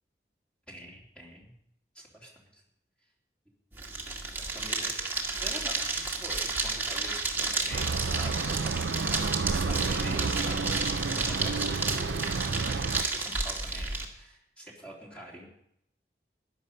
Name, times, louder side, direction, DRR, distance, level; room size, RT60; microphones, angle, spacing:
voice 1, 0.7-1.5 1.9-2.6 4.4-8.6 9.4-12.7 13.0-15.5, right 1 dB, 5° left, -3 dB, 3.4 m, -45 dB
sound 1, 3.7-14.0, right 3 dB, 10° right, 2.0 m, -32 dB
sound 2, 7.7-13.0, right 4 dB, 85° right, 0.6 m, -31 dB
15.0 x 11.0 x 5.4 m, 0.73 s
head